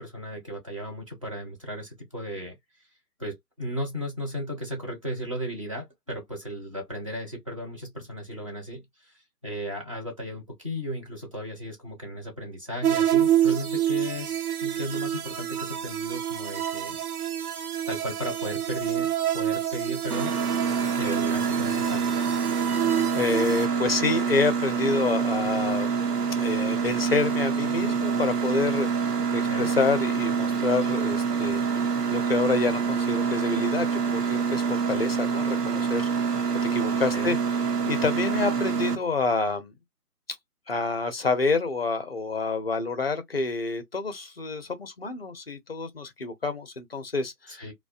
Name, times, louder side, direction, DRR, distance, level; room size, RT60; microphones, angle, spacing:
voice 1, 0.0-2.6 3.2-17.0 17.9-20.3 21.0-22.1 29.5-29.7 37.1-37.4 47.5-47.7, equal, 20° right, 0.6 m, -35 dB
sound 1, 12.8-23.7, right 11 dB, 65° right, 0.6 m, -28 dB
Mechanisms, 20.1-39.0, right 6 dB, 85° right, 0.9 m, -26 dB
voice 2, 23.1-25.9 26.3-28.9 29.3-31.6 32.1-36.3 36.7-37.4 37.9-39.7 40.7-47.6, left 4 dB, 40° left, 0.5 m, -28 dB
2.4 x 2.1 x 2.4 m
figure-of-eight pair, 145°, 47 cm